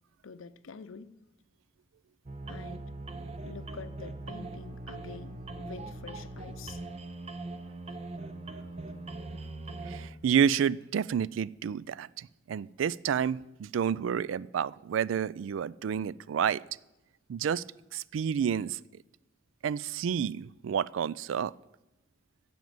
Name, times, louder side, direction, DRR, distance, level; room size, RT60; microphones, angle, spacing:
voice 1, 0.2-1.1 2.5-2.9 3.5-6.8 8.3-8.4, left 4 dB, 80° left, 0.6 m, -47 dB
sound 1, 2.3-10.1, right 2 dB, 30° right, 0.7 m, -41 dB
voice 2, 9.9-16.6 17.3-17.6 17.9-18.8 19.6-21.5, right 8 dB, 70° right, 0.3 m, -29 dB
14.5 x 5.4 x 7.7 m
head